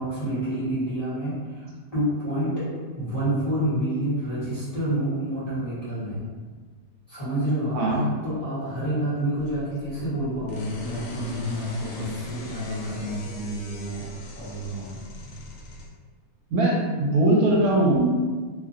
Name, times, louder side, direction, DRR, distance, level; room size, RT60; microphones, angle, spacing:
voice 1, 0.0-2.5 2.9-6.2 7.1-14.1 14.4-15.0, right 1 dB, 25° left, -13 dB, 1.2 m, -28 dB
voice 2, 7.7-8.0 16.5-18.1, right 2 dB, 75° right, -2 dB, 1.0 m, -20 dB
sound 1, 9.4-15.9, left 1 dB, 65° left, 0.9 m, -41 dB
2.9 x 2.4 x 2.6 m, 1.4 s
omnidirectional pair, 1.6 m